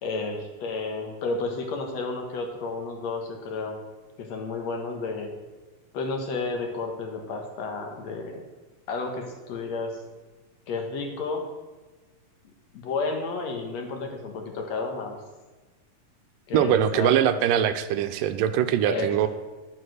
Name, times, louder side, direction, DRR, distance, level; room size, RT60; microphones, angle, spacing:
voice 1, 0.0-3.8 4.2-5.3 5.9-8.4 8.9-10.0 10.7-11.4 12.7-15.2 16.5-17.1 18.8-19.3, left 3 dB, 60° left, 3 dB, 2.5 m, -31 dB
voice 2, 16.5-19.3, right 10 dB, 90° right, 9 dB, 2.4 m, -22 dB
11.5 x 7.3 x 6.4 m, 1.3 s
omnidirectional pair, 3.7 m